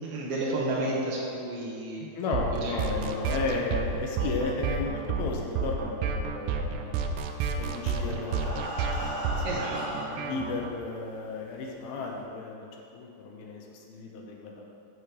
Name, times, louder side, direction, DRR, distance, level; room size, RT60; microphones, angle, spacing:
voice 1, 0.0-2.1 2.6-3.0 9.4-9.8 10.3-10.4, right 2 dB, 65° right, -5 dB, 1.5 m, -32 dB
voice 2, 2.1-7.0 7.6-8.6 8.9-12.7 12.9-14.7, left 3 dB, 75° left, 0 dB, 2.8 m, -34 dB
sound 1, 2.3-10.7, right 5 dB, 90° right, 2.7 m, -31 dB
Breathing, 7.4-10.4 11.1-11.2 11.6-11.7 12.1-12.2, equal, 15° right, 2.2 m, -37 dB
15.0 x 6.1 x 5.0 m, 2.6 s
omnidirectional pair, 4.6 m